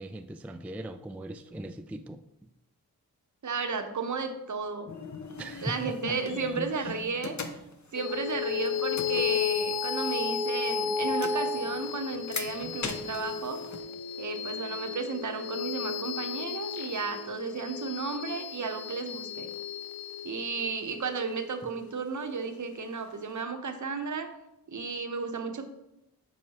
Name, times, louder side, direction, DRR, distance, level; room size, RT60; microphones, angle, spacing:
voice 1, 0.0-2.2 5.4-6.2 6.6-6.9 21.6-21.7, right 1 dB, 5° right, 8 dB, 0.3 m, -39 dB
voice 2, 3.4-4.9 5.6-7.4 7.9-13.6 14.2-19.5 20.2-24.3 24.7-25.6, right 5 dB, 50° right, 7 dB, 0.8 m, -33 dB
sound 1, 4.9-10.5 10.9-13.8, left 4 dB, 50° left, 0.8 m, -41 dB
sound 2, 8.0-22.7, left 6 dB, 75° left, 0.5 m, -33 dB
7.4 x 4.8 x 2.9 m, 0.89 s
cardioid pair, 45°, 37 cm